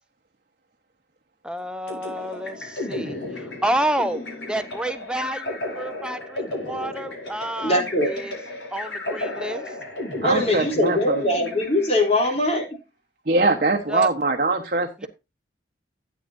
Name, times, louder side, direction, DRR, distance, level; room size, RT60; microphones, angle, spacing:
voice 1, 1.4-4.2 4.5-8.3 8.7-9.6 13.9-14.1 15.0-15.1, right 1 dB, 5° right, 0.7 m, -29 dB
sound 1, 1.9-12.3, left 2 dB, 85° left, 5.8 m, -34 dB
voice 2, 7.6-8.1 10.2-12.6, left 1 dB, 35° left, 3.3 m, -21 dB
voice 3, 10.2-11.2 13.3-15.1, right 3 dB, 50° right, 1.1 m, -22 dB
13.0 x 8.4 x 2.6 m
head